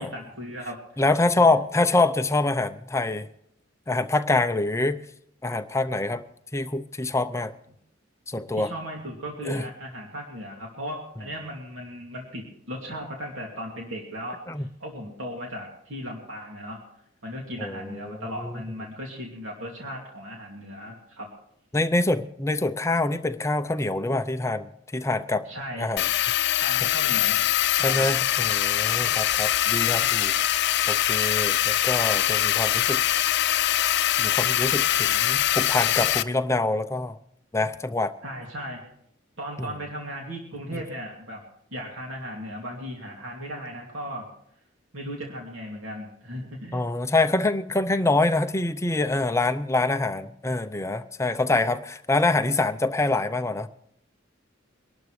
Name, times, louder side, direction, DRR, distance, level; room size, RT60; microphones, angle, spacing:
voice 1, 0.0-1.0 7.1-7.2 8.4-16.8 17.2-21.3 25.4-25.9 26.6-28.1 38.2-38.8 39.4-41.4 41.7-44.3 44.9-46.8, equal, 85° right, -1 dB, 2.5 m, -37 dB
voice 2, 1.0-3.3 3.9-5.0 5.4-6.2 6.5-7.5 8.3-8.7 9.5-9.6 14.5-14.6 17.6-18.0 18.4-18.5 21.7-25.4 25.8-26.0 27.8-30.6 30.9-33.0 34.2-37.2 37.5-38.1 46.7-53.7, left 2 dB, 15° left, 9 dB, 0.6 m, -25 dB
sound 1, 26.0-36.2, left 12 dB, 60° left, 0.5 m, -23 dB
23.5 x 12.0 x 3.2 m, 0.73 s
head